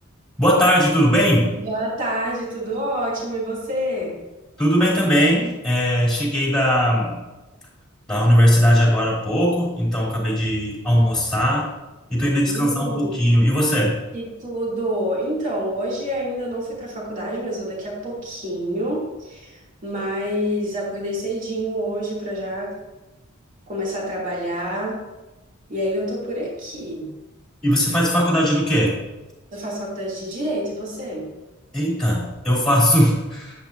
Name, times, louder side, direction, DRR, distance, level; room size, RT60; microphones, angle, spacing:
voice 1, 0.4-1.5 4.6-7.1 8.1-11.7 12.1-13.9 27.6-29.0 31.7-33.5, equal, 5° left, -5 dB, 3.2 m, -19 dB
voice 2, 1.6-4.2 12.2-13.1 14.1-22.8 23.7-25.0 25.7-27.1 29.5-31.3, equal, 40° right, -5 dB, 2.9 m, -27 dB
10.5 x 8.5 x 2.7 m, 1.1 s
head